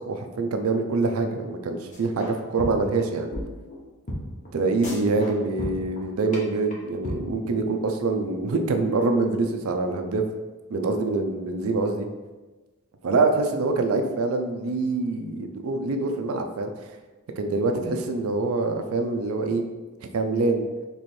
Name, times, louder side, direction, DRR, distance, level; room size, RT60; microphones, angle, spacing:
voice 1, 0.1-3.3 4.5-10.2 10.7-12.1 13.0-17.0 17.4-19.6 20.1-20.7, right 3 dB, 85° right, 5 dB, 0.4 m, -25 dB
sound 1, 1.9-2.3 2.6-3.0 3.3-3.4 3.7-3.8 4.1-4.2 4.4-4.5 4.8-5.3 5.6-6.0 6.3-6.4 6.7-6.8 7.0-7.2, equal, 35° left, 1.0 m, -32 dB
3.1 x 3.0 x 4.3 m, 1.2 s
head